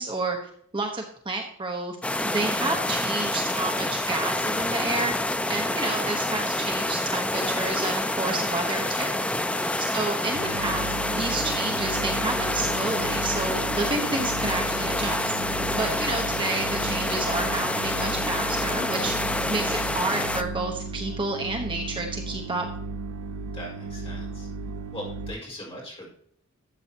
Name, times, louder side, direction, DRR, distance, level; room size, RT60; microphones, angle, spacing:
voice 1, 0.0-2.0 2.2-5.1 5.5-9.2 9.8-15.3 15.8-19.1 19.5-22.7, right 2 dB, 25° right, 2 dB, 1.1 m, -30 dB
sound 1, 2.0-20.4, left 1 dB, 5° left, 0.4 m, -27 dB
sound 2, 10.3-25.3, right 3 dB, 85° right, 0.9 m, -35 dB
voice 2, 23.4-24.5 24.9-26.1, equal, 25° left, -2 dB, 4.7 m, -40 dB
12.5 x 7.9 x 2.9 m, 0.64 s
head